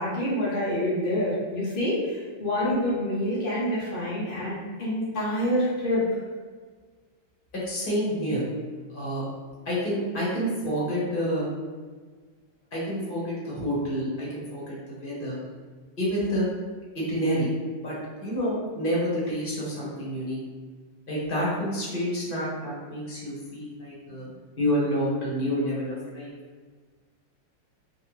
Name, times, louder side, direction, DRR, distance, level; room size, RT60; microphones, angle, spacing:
voice 1, 0.0-6.0, left 1 dB, 70° left, -7 dB, 0.5 m, -27 dB
voice 2, 7.5-8.5 8.9-9.3 9.6-11.5 12.7-15.4 16.0-16.5 16.9-17.5 17.8-20.4 21.1-24.3 24.6-26.3, equal, 30° left, -7 dB, 1.1 m, -28 dB
3.4 x 3.1 x 3.2 m, 1.5 s
omnidirectional pair, 2.2 m